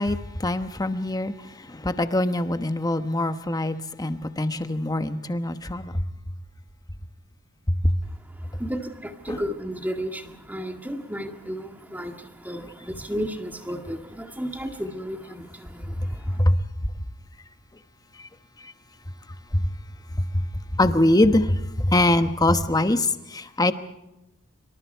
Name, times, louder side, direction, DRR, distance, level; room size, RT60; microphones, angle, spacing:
voice 1, 0.0-1.3 1.7-6.0 7.7-8.0 9.3-9.4 16.0-16.6 18.6-18.7 19.5-19.6 20.2-20.5 20.7-23.7, left 1 dB, 20° left, 1.1 m, -23 dB
voice 2, 8.4-16.4, equal, 10° right, 2.0 m, -33 dB
26.5 x 25.0 x 4.6 m
head